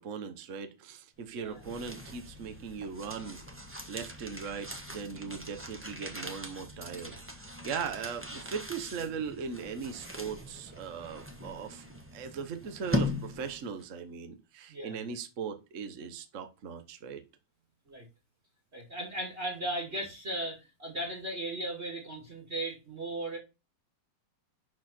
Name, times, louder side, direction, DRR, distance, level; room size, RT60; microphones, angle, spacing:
voice 1, 0.0-11.8 12.1-17.2, right 6 dB, 45° right, 8 dB, 1.2 m, -39 dB
sound 1, 1.3-13.8, left 1 dB, 10° right, 0.9 m, -40 dB
voice 2, 14.7-15.1 17.9-18.1 18.7-23.4, right 1 dB, 30° right, 0 dB, 2.7 m, -37 dB
11.0 x 4.3 x 4.4 m, 0.28 s
omnidirectional pair, 2.4 m